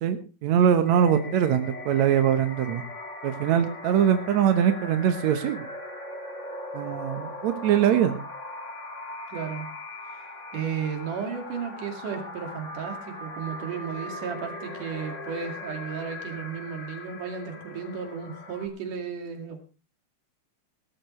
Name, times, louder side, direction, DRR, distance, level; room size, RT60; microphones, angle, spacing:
voice 1, 0.0-2.8 3.2-5.6 6.7-8.2, right 9 dB, 70° right, 8 dB, 2.3 m, -22 dB
sound 1, 0.9-18.7, left 2 dB, 30° left, 1.6 m, -39 dB
voice 2, 9.3-9.7 10.5-19.6, right 6 dB, 90° right, 5 dB, 3.8 m, -34 dB
19.5 x 13.0 x 3.2 m, 0.31 s
omnidirectional pair, 3.5 m